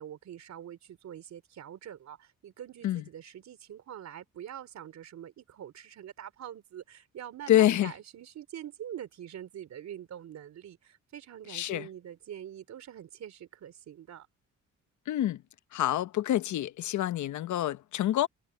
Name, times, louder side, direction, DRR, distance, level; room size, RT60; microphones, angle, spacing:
voice 1, 0.0-14.3, right 10 dB, 65° right, 3.4 m, -45 dB
voice 2, 7.5-7.9 11.5-11.9 15.1-15.4 15.7-18.3, left 13 dB, 75° left, 1.0 m, -27 dB
cardioid pair, 90°, 30 cm